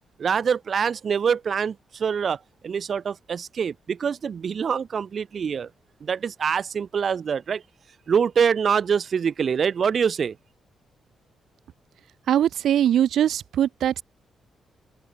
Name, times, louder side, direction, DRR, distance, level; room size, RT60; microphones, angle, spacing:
voice 1, 0.2-5.7 6.0-7.6 8.1-10.4, right 6 dB, 55° right, 1.9 m, -25 dB
voice 2, 12.3-14.0, right 10 dB, 80° right, 2.4 m, -21 dB
cardioid pair, 70°, 0 cm